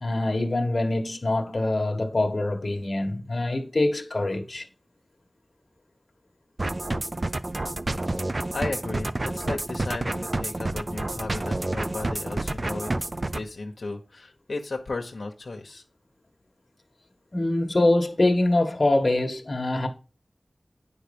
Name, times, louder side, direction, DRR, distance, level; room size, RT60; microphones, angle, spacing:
voice 1, 0.0-4.7 17.3-19.9, left 2 dB, 55° left, 1.4 m, -24 dB
sound 1, 6.6-13.4, right 2 dB, 45° right, 0.6 m, -29 dB
voice 2, 8.5-12.9 13.3-15.8, left 3 dB, 80° left, 1.2 m, -34 dB
9.2 x 5.4 x 5.3 m
wide cardioid pair, 55°, 0 cm